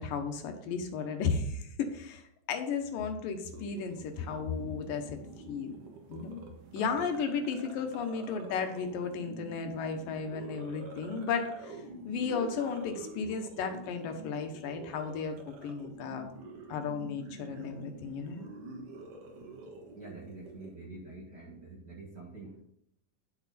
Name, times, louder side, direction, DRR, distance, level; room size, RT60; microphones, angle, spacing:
voice 1, 0.0-2.2 2.5-5.2 5.5-5.7 6.1-6.4 6.7-11.8 12.1-16.3 16.7-18.4 19.5-19.6, left 5 dB, 80° left, 5 dB, 2.8 m, -34 dB
sound 1, 3.5-20.7, right 2 dB, 70° right, 2.9 m, -47 dB
voice 2, 19.9-22.6, right 2 dB, 40° right, -2 dB, 1.7 m, -46 dB
10.5 x 6.8 x 4.2 m, 0.73 s
omnidirectional pair, 3.9 m